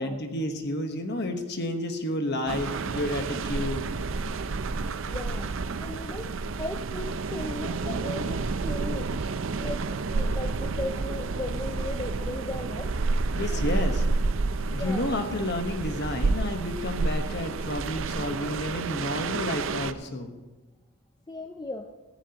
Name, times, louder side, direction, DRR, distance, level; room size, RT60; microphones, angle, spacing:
voice 1, 0.0-3.9 13.3-14.0 14.7-20.3, left 1 dB, 50° left, 6 dB, 1.2 m, -31 dB
sound 1, 2.5-19.9, right 3 dB, 60° right, 0.5 m, -30 dB
voice 2, 4.8-9.1 9.6-13.0 13.3-13.8 14.7-15.1 21.3-21.9, left 2 dB, 20° left, 5 dB, 0.4 m, -37 dB
17.0 x 14.5 x 2.9 m, 1.2 s
head